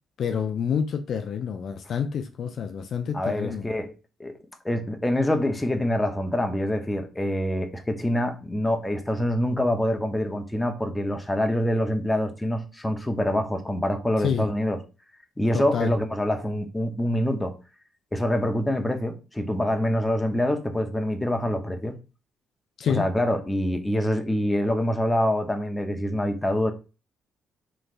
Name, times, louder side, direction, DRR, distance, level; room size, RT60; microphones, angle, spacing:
voice 1, 0.2-3.6 14.2-14.5 15.5-15.9 22.8-23.1, left 7 dB, 60° left, 0.4 m, -28 dB
voice 2, 3.1-3.9 4.2-4.3 4.6-14.8 15.4-17.5 18.1-22.0 22.9-26.7, left 1 dB, 15° left, 0.8 m, -25 dB
3.1 x 3.1 x 2.5 m
hypercardioid pair, 55°, 0 cm